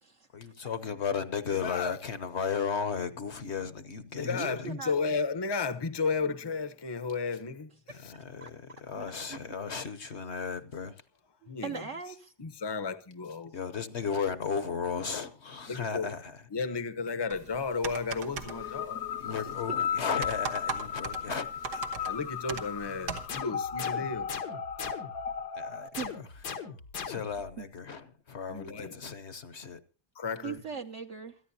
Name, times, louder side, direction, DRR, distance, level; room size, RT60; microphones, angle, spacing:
voice 1, 0.3-4.7 8.0-10.9 13.5-16.4 16.7-16.8 19.2-21.5 21.7-21.8 25.6-26.4 27.1-29.8, left 6 dB, 50° left, 1.1 m, -35 dB
voice 2, 1.5-2.0 4.1-7.7 8.0-8.1 11.5-11.9 12.4-13.5 15.7-16.1 16.5-19.0 22.0-24.3 28.5-29.0 30.1-30.6, left 4 dB, 20° left, 0.7 m, -33 dB
voice 3, 4.2-4.9 7.9-8.5 8.9-9.4 11.4-12.3 19.7-19.8 26.0-26.1 27.6-27.7 30.4-31.4, right 6 dB, 55° right, 1.1 m, -40 dB
sound 1, 17.3-23.3, right 5 dB, 90° right, 2.0 m, -40 dB
sound 2, 18.4-25.9, left 8 dB, 65° left, 1.3 m, -35 dB
sound 3, 23.3-25.4 25.9-27.5, left 6 dB, 85° left, 2.0 m, -40 dB
27.5 x 10.5 x 2.8 m
omnidirectional pair, 1.7 m